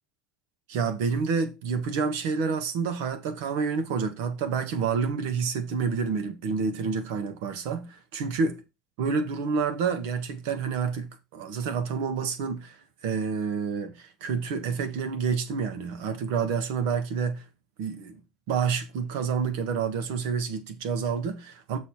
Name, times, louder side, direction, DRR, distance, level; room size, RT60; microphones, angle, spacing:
voice 1, 0.7-8.5 9.0-12.8 13.0-17.4 17.8-18.2 18.5-21.8, right 5 dB, 75° right, 1.6 m, -28 dB
6.7 x 6.7 x 4.5 m
supercardioid pair, 115°, 0 cm